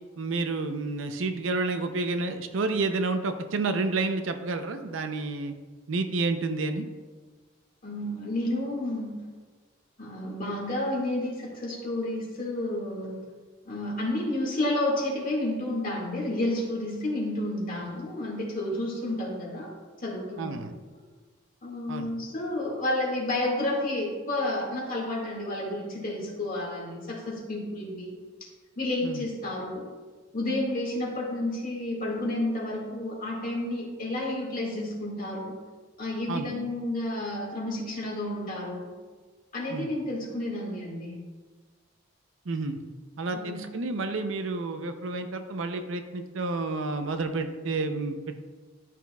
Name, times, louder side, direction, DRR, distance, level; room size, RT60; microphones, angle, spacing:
voice 1, 0.2-5.5 5.9-6.9 20.4-20.7 21.9-22.1 29.0-29.2 36.3-36.5 39.7-39.9 42.5-42.8 43.2-48.4, right 3 dB, 75° right, 7 dB, 0.6 m, -30 dB
voice 2, 7.8-9.1 10.0-13.2 13.7-19.7 20.0-20.7 21.6-28.2 28.4-28.5 28.8-29.9 30.3-35.6 36.0-38.9 39.5-41.3 43.3-43.6, left 1 dB, 45° left, -2 dB, 1.9 m, -31 dB
12.0 x 5.9 x 2.3 m, 1.4 s
head